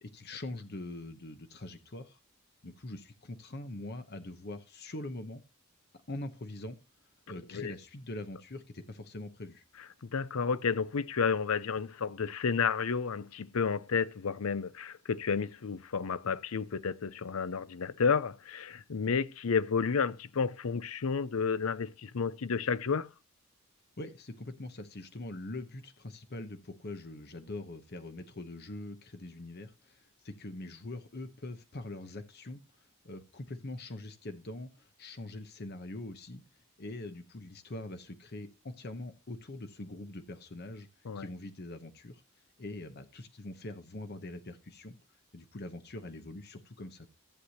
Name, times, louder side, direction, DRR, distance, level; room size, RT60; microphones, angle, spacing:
voice 1, 0.0-2.2 2.6-5.4 6.1-6.8 7.3-9.6 24.0-32.6 33.0-36.4 36.8-40.9 41.1-42.2 42.6-45.0 45.3-47.1, left 2 dB, 45° left, 0.9 m, -43 dB
voice 2, 10.0-23.1 41.0-41.2, left 5 dB, 70° left, 0.6 m, -31 dB
14.5 x 8.0 x 2.9 m
head